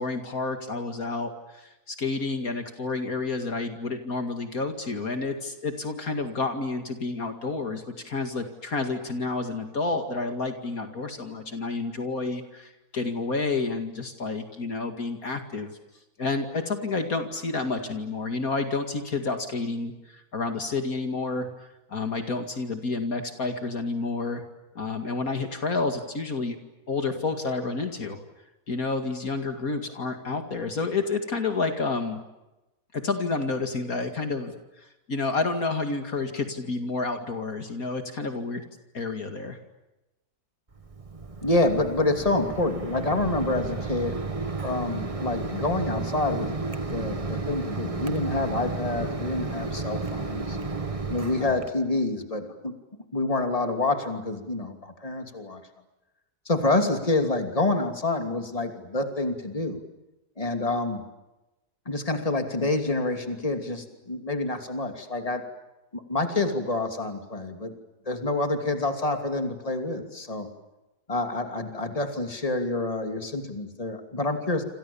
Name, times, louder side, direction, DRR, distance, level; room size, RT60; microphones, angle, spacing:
voice 1, 0.0-15.7 16.2-21.5 21.9-24.4 24.7-26.6 26.9-28.2 28.7-32.2 32.9-38.6 38.9-39.6, left 3 dB, 60° left, 6 dB, 2.6 m, -30 dB
Mechanisms, 40.7-51.7, right 3 dB, 20° right, 1.5 m, -32 dB
voice 2, 41.4-44.2 44.6-50.6 51.1-52.7 53.1-55.6 56.5-59.8 60.4-61.0 61.9-65.4 65.9-67.7 68.1-70.5 71.1-74.6, left 2 dB, 20° left, 5 dB, 2.9 m, -27 dB
28.0 x 27.5 x 7.1 m, 0.99 s
omnidirectional pair, 1.7 m